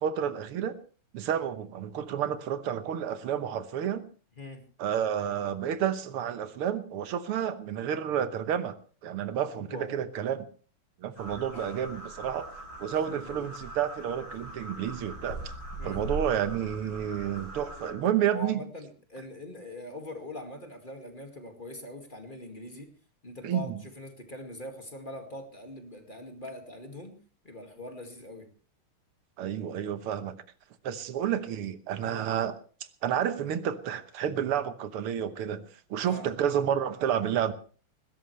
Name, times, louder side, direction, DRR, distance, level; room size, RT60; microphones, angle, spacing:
voice 1, 0.0-0.8 1.1-4.0 4.8-8.8 9.0-10.4 11.0-12.5 12.8-15.4 15.8-18.6 23.4-23.7 29.4-30.4 30.8-32.6 33.0-37.5, right 9 dB, 85° right, 11 dB, 2.0 m, -30 dB
voice 2, 9.6-10.0 13.0-13.5 15.8-16.0 18.3-22.9 23.2-27.2 27.4-28.5 32.0-32.2 36.0-36.3, left 1 dB, 25° left, 4 dB, 2.1 m, -42 dB
sound 1, 11.2-17.9, right 2 dB, 65° left, 6.4 m, -41 dB
20.0 x 16.5 x 3.2 m, 0.39 s
omnidirectional pair, 2.4 m